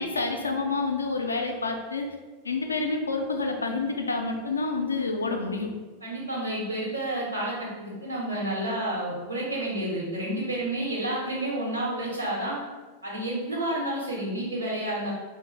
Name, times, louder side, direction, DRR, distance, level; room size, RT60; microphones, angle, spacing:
voice 1, 0.0-2.1 2.4-5.7, left 3 dB, 75° left, 4 dB, 0.3 m, -28 dB
voice 2, 6.0-12.6 13.0-15.1, right 1 dB, 90° right, -5 dB, 0.9 m, -30 dB
3.5 x 2.1 x 3.2 m, 1.3 s
figure-of-eight pair, 90°, 0 cm